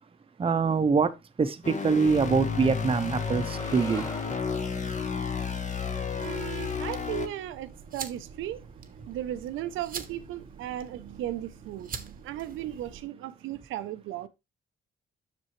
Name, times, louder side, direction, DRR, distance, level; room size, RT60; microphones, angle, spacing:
voice 1, 0.4-1.1 1.4-4.1, right 5 dB, 30° right, 0.8 m, -24 dB
sound 1, 1.6-7.3, left 6 dB, 40° left, 1.3 m, -32 dB
sound 2, 3.1-7.4, left 1 dB, 15° left, 1.4 m, -45 dB
sound 3, 6.2-13.0, right 6 dB, 45° right, 1.0 m, -44 dB
voice 2, 6.2-8.6 9.1-14.3, right 12 dB, 90° right, 0.7 m, -36 dB
7.5 x 6.1 x 3.1 m
cardioid pair, 90°, 20 cm